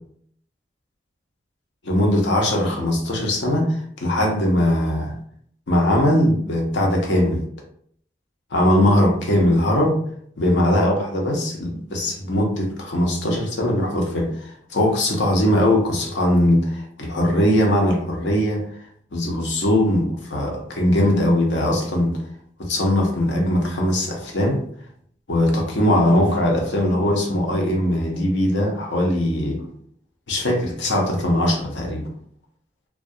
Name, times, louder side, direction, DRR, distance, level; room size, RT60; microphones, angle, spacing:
voice 1, 1.8-5.1 5.7-7.4 8.5-10.0 10.4-18.6 19.1-22.2 22.6-24.6 25.3-29.7 30.3-32.0, left 1 dB, 75° left, 0 dB, 0.7 m, -20 dB
2.3 x 2.2 x 2.6 m, 0.63 s
head